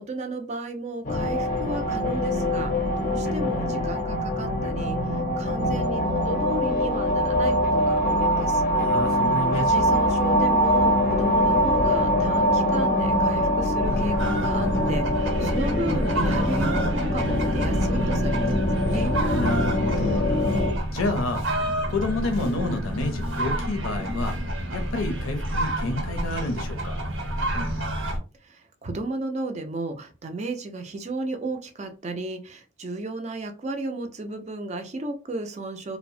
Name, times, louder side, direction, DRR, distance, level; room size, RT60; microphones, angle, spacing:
voice 1, 0.0-8.6 9.0-19.2 28.4-36.0, right 2 dB, 35° right, 0.4 m, -34 dB
sound 1, 1.0-20.7, equal, 40° left, 0.5 m, -23 dB
voice 2, 8.8-9.9 19.3-20.3 20.9-21.5 21.9-24.4 24.7-27.0, left 2 dB, 90° left, 0.5 m, -29 dB
sound 2, 13.8-28.2, right 1 dB, 90° right, 1.0 m, -29 dB
2.7 x 2.0 x 2.5 m
head